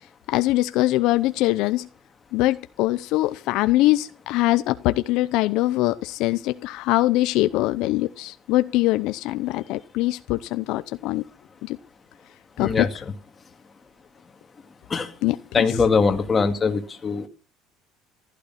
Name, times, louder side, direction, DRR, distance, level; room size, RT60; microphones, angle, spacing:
voice 1, 0.3-1.9 2.3-11.2 11.6-11.8 12.6-12.9 15.2-15.7, left 17 dB, 65° left, 12 dB, 0.7 m, -22 dB
voice 2, 12.6-12.9 14.9-15.1 15.5-17.3, left 5 dB, 20° left, 5 dB, 2.2 m, -22 dB
15.5 x 11.5 x 5.8 m, 0.37 s
cardioid pair, 150°, 0 cm